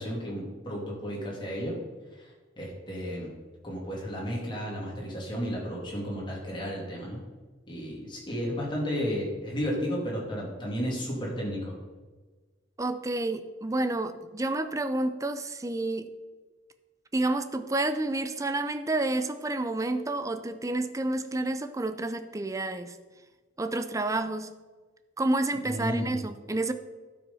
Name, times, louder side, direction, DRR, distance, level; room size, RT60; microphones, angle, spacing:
voice 1, 0.0-1.7 2.2-3.3 3.6-7.2 7.7-11.7 25.6-26.1, equal, 25° left, -3 dB, 2.8 m, -33 dB
voice 2, 12.8-16.1 17.1-23.0 23.6-24.5 25.2-26.7, right 2 dB, 15° right, 10 dB, 0.5 m, -29 dB
11.0 x 6.4 x 5.6 m, 1.3 s
head